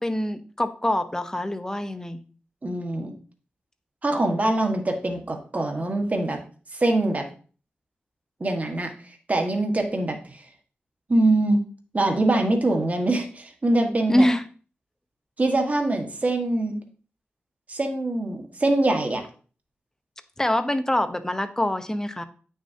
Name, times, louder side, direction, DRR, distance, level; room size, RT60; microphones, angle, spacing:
voice 1, 0.0-2.2 14.1-14.4 20.4-22.2, left 1 dB, 15° left, 9 dB, 0.8 m, -24 dB
voice 2, 2.6-3.1 4.0-6.4 6.7-7.3 8.4-10.4 11.1-11.6 11.9-14.2 15.4-16.7 17.7-19.2, right 2 dB, 35° right, 4 dB, 1.5 m, -23 dB
8.9 x 6.4 x 2.8 m, 0.39 s
wide cardioid pair, 70°, 4 cm